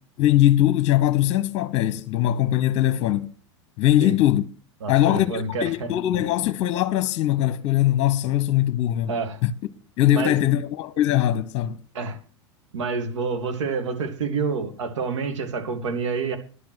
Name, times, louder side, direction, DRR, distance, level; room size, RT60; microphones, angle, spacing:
voice 1, 0.2-3.3 3.8-4.4 4.9-9.1 9.4-9.5 10.0-11.8, left 13 dB, 45° left, 1.0 m, -21 dB
voice 2, 4.8-5.9 9.1-9.4 10.1-10.6 11.9-12.2 12.7-16.4, right 4 dB, 75° right, 2.7 m, -28 dB
11.5 x 8.4 x 6.3 m
hypercardioid pair, 90°, 16 cm